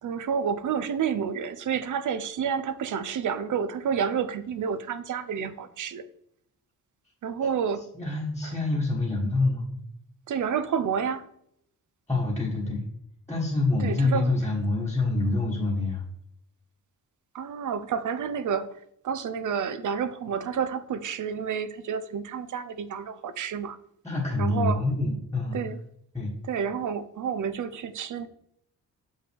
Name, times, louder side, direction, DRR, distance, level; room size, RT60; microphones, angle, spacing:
voice 1, 0.0-6.0 7.2-7.9 8.4-8.5 10.3-11.3 13.8-14.3 17.3-18.7 19.0-23.8 24.4-24.8 25.5-25.8 26.4-28.3, right 7 dB, 60° right, 0.6 m, -29 dB
voice 2, 7.9-9.7 12.1-12.8 13.3-16.0 24.0-25.6 26.1-26.3, left 2 dB, 5° left, 1.3 m, -26 dB
7.1 x 5.4 x 3.4 m
wide cardioid pair, 180°, 35 cm